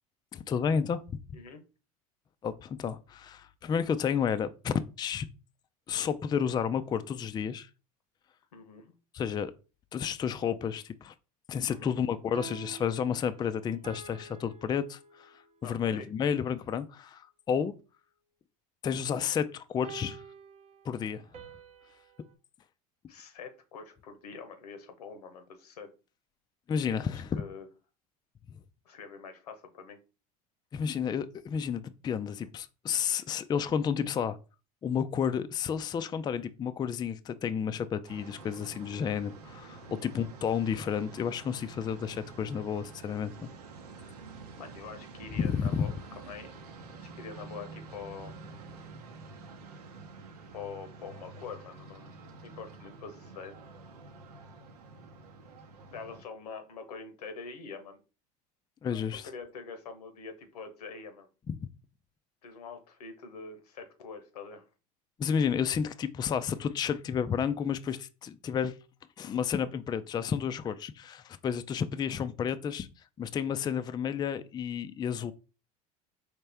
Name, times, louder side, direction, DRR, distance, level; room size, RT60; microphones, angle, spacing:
voice 1, 0.3-1.0 2.4-5.3 5.9-7.7 9.1-9.5 9.9-11.1 11.5-17.7 18.8-20.2 20.8-21.3 26.7-27.3 30.7-34.4 34.8-43.5 45.4-45.9 58.8-59.3 61.5-61.7 65.2-68.8 69.2-72.9 73.2-75.3, left 7 dB, 20° left, 0.3 m, -31 dB
voice 2, 8.5-8.9 11.7-11.9 15.6-16.1 23.1-25.9 26.9-27.7 28.8-30.0 39.8-40.0 44.6-45.9 46.3-46.5 46.9-48.3 50.5-52.2 52.4-53.5 55.9-58.0 58.8-61.3 62.4-64.6, left 5 dB, 90° left, 1.0 m, -45 dB
sound 1, 12.2-15.6 19.8-22.3, right 7 dB, 35° right, 0.8 m, -49 dB
sound 2, 38.0-56.2, right 3 dB, 90° right, 0.8 m, -48 dB
4.3 x 3.2 x 3.3 m
hypercardioid pair, 90°, 19 cm